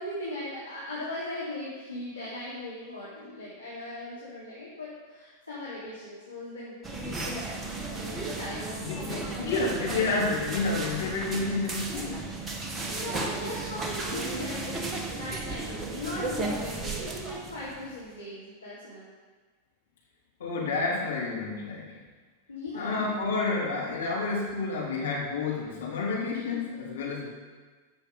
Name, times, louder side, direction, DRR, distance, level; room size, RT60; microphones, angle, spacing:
voice 1, 0.0-9.7 12.9-19.0 22.5-23.2, left 1 dB, 85° left, -11 dB, 3.8 m, -39 dB
sound 1, 6.8-18.0, right 3 dB, 20° right, 1.5 m, -35 dB
voice 2, 8.8-12.2 20.4-21.9 22.7-27.3, left 3 dB, 65° left, -4 dB, 3.3 m, -30 dB
15.0 x 7.0 x 5.5 m, 1.4 s
figure-of-eight pair, 90°, 0 cm